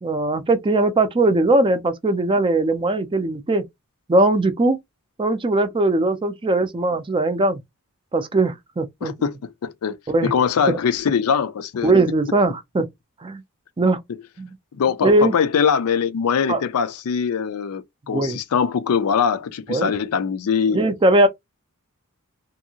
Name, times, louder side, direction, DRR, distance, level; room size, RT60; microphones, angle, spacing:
voice 1, 0.0-3.6 4.1-4.8 5.2-7.6 8.1-9.1 10.1-10.3 11.8-12.9 13.2-13.4 13.8-14.0 14.4-14.6 15.0-15.3 16.5-16.6 18.1-18.4 19.7-19.9 20.7-21.3, right 2 dB, 20° right, 0.4 m, -19 dB
voice 2, 9.0-10.0 10.2-11.9 14.7-20.8, left 6 dB, 70° left, 0.4 m, -22 dB
2.8 x 2.6 x 2.7 m
head